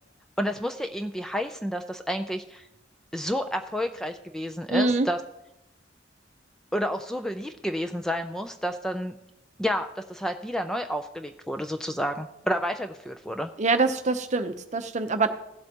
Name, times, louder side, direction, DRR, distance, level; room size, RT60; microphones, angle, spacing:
voice 1, 0.4-2.7 3.1-5.2 6.7-9.1 9.6-13.5, equal, 5° left, 7 dB, 0.4 m, -30 dB
voice 2, 4.7-5.1 13.6-15.3, right 3 dB, 40° right, 8 dB, 0.7 m, -24 dB
16.5 x 7.8 x 2.9 m, 0.87 s
head